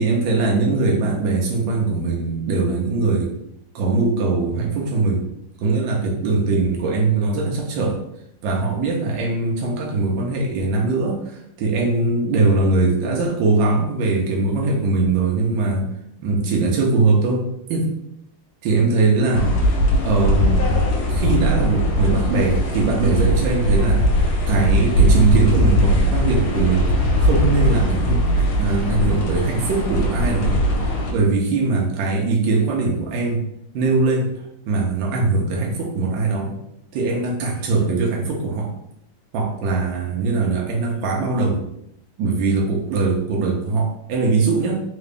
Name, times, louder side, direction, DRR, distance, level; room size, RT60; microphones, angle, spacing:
voice 1, 0.0-3.3 3.7-5.2 5.6-8.0 8.4-15.9 16.2-17.4 17.7-17.9 18.6-19.5 20.0-20.7 21.1-24.0 24.5-26.9 27.2-30.6 31.1-33.4 33.7-34.4 34.7-36.6 36.9-38.7 39.3-41.6 42.2-44.8, right 3 dB, 70° right, -1 dB, 1.4 m, -21 dB
sound 1, 19.3-31.1, equal, 70° left, 1.4 m, -19 dB
3.8 x 2.9 x 3.4 m, 0.76 s
omnidirectional pair, 2.4 m